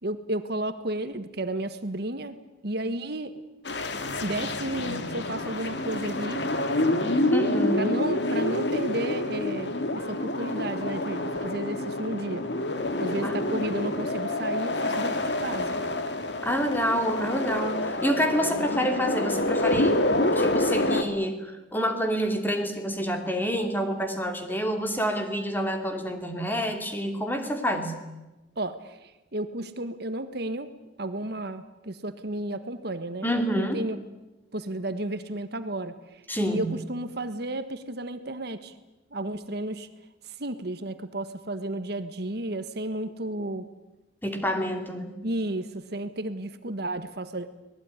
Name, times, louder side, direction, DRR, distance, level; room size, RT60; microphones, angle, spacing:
voice 1, 0.0-3.3 4.2-6.4 7.7-12.5 13.0-15.8 28.5-30.7 31.0-34.0 34.5-38.7 39.1-39.9 40.2-43.6 45.2-47.5, right 1 dB, 60° right, 10 dB, 1.5 m, -33 dB
sound 1, 3.7-21.0, left 1 dB, 65° left, 2.3 m, -27 dB
voice 2, 7.3-7.8 13.2-13.7 16.4-20.0 20.3-27.9 33.2-33.8 36.3-36.7 44.2-45.2, equal, 10° left, 5 dB, 2.8 m, -28 dB
25.0 x 19.0 x 9.8 m, 1.0 s
head